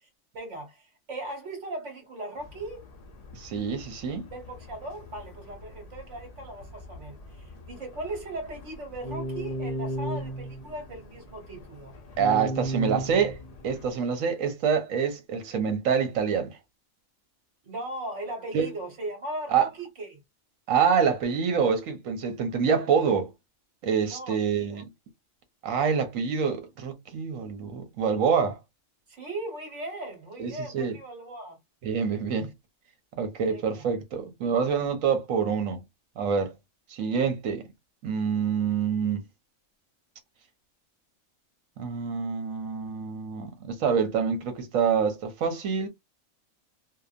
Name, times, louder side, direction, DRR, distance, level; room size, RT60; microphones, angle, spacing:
voice 1, 0.3-2.8 4.3-11.9 17.6-20.2 24.1-24.8 29.1-31.6 33.5-33.9, right 2 dB, 65° right, 1.5 m, -38 dB
sound 1, 2.4-13.9, right 1 dB, 65° left, 0.4 m, -38 dB
voice 2, 3.3-4.3 12.2-13.4 13.6-16.6 18.5-18.7 19.5-19.7 20.7-23.3 23.8-24.9 25.6-28.6 30.4-31.0 31.8-32.5 33.2-35.8 36.2-36.5 36.9-37.6 38.0-39.2 41.8-45.9, right 6 dB, 80° right, 1.2 m, -26 dB
2.8 x 2.2 x 2.4 m
omnidirectional pair, 1.4 m